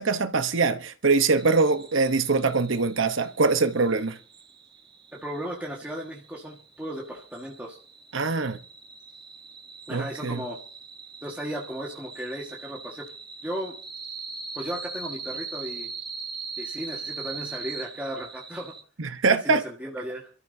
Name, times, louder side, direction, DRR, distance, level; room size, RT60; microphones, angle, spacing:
voice 1, 0.0-4.2 8.1-8.6 9.9-10.4 19.0-19.6, right 4 dB, 80° right, 1.0 m, -23 dB
sound 1, 1.4-18.8, right 4 dB, 25° right, 1.1 m, -41 dB
voice 2, 5.1-7.8 9.9-10.6 11.2-13.1 13.4-13.7 14.5-15.9 16.6-18.7 19.4-20.3, right 1 dB, 10° right, 1.7 m, -35 dB
27.0 x 13.0 x 2.8 m
head